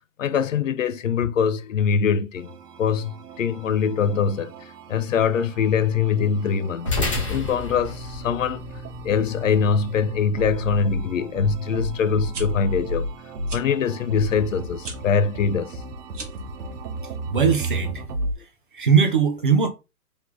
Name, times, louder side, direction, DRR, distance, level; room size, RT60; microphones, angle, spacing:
voice 1, 0.2-2.5 2.8-8.7 9.0-13.1 13.5-15.8, left 6 dB, 55° left, 0.5 m, -23 dB
sound 1, 2.4-18.3, right 1 dB, 85° right, 1.1 m, -34 dB
sound 2, 6.9-15.5, left 2 dB, 20° left, 0.8 m, -34 dB
sound 3, 12.1-12.4 13.4-13.6 14.8-15.0 16.1-16.5, right 4 dB, 50° right, 1.4 m, -36 dB
voice 2, 17.3-18.0 18.7-19.7, right 6 dB, 35° right, 0.5 m, -19 dB
3.9 x 3.1 x 3.1 m
hypercardioid pair, 175°, 46 cm